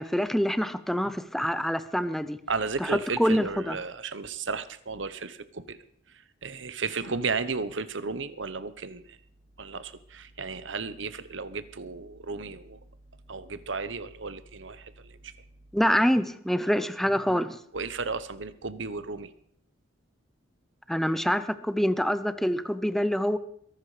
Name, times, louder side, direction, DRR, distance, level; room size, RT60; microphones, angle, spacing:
voice 1, 0.0-2.4 2.8-3.8 15.7-17.6 20.9-23.4, equal, ahead, 13 dB, 0.8 m, -26 dB
voice 2, 2.5-5.8 6.4-9.2 9.6-12.8 13.3-15.3 17.7-19.3, right 4 dB, 70° right, 13 dB, 1.1 m, -34 dB
22.0 x 12.0 x 5.1 m, 0.67 s
head